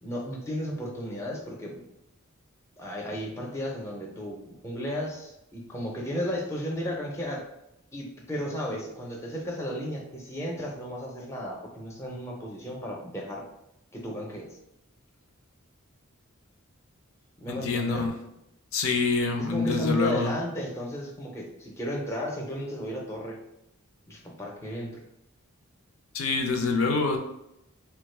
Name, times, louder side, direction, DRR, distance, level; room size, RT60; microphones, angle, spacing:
voice 1, 0.0-1.8 2.8-7.4 7.9-13.4 13.9-14.5 17.4-18.0 19.5-23.4 24.1-25.0, equal, 15° left, -2 dB, 0.5 m, -34 dB
voice 2, 17.5-18.1 18.7-20.3 26.1-27.2, left 4 dB, 70° left, 4 dB, 0.5 m, -26 dB
3.4 x 2.1 x 3.2 m, 0.83 s
head